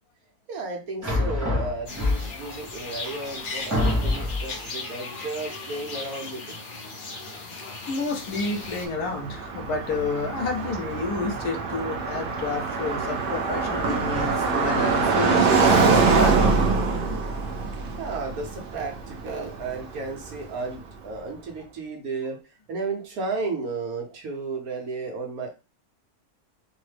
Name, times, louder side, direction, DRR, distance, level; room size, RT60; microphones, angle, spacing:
voice 1, 0.5-6.5 7.1-7.5 18.0-25.5, right 3 dB, 70° right, 2 dB, 1.2 m, -33 dB
sound 1, 1.0-2.5 3.2-3.3 3.7-4.5, left 1 dB, 20° right, 0.5 m, -25 dB
sound 2, 1.9-8.9, left 3 dB, 55° left, 0.5 m, -37 dB
voice 2, 7.9-16.5, left 3 dB, 75° left, 3 dB, 1.2 m, -30 dB
Car passing by, 8.4-20.4, right 4 dB, 85° right, 0.4 m, -24 dB
3.1 x 2.1 x 3.2 m, 0.29 s
omnidirectional pair, 1.7 m